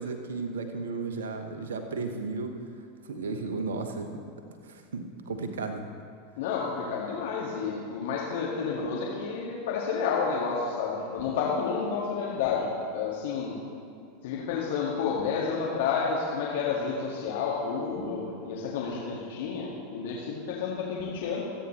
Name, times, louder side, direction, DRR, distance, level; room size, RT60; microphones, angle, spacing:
voice 1, 0.0-2.6 3.0-4.3 4.6-5.9, right 4 dB, 65° right, 6 dB, 1.1 m, -34 dB
voice 2, 6.4-13.5 14.2-21.4, left 5 dB, 55° left, -4 dB, 1.8 m, -30 dB
25.5 x 9.0 x 3.1 m, 2.3 s
figure-of-eight pair, 85°, 0 cm